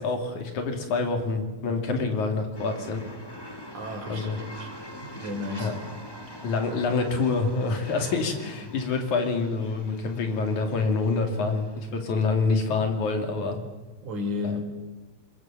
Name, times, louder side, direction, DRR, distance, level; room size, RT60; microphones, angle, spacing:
voice 1, 0.0-3.0 4.1-4.4 5.6-5.7 6.4-13.6 14.4-14.6, left 4 dB, 85° left, 5 dB, 4.0 m, -26 dB
sound 1, 2.5-13.1, left 1 dB, 10° left, 1.4 m, -44 dB
voice 2, 3.7-4.3 4.6-4.7 5.0-5.7 14.0-14.6, left 3 dB, 85° right, 3 dB, 4.9 m, -32 dB
25.0 x 22.5 x 7.4 m, 1.2 s
omnidirectional pair, 3.3 m